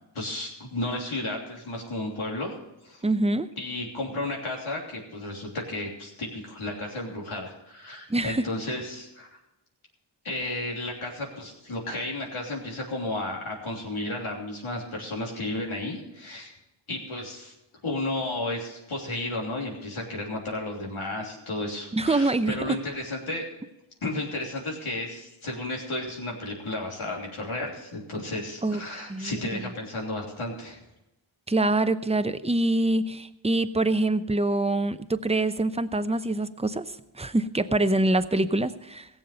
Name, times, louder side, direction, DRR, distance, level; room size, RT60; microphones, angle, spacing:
voice 1, 0.1-2.5 2.8-3.0 3.6-9.3 10.2-16.5 16.9-17.5 17.8-23.4 24.0-30.8, left 2 dB, 80° left, -1 dB, 3.3 m, -33 dB
voice 2, 3.0-3.5 8.1-8.5 21.9-22.8 28.6-28.8 29.1-29.6 31.5-36.9 37.2-39.1, right 2 dB, 15° right, 11 dB, 0.7 m, -25 dB
16.5 x 7.4 x 6.6 m, 0.90 s
cardioid pair, 45°, 49 cm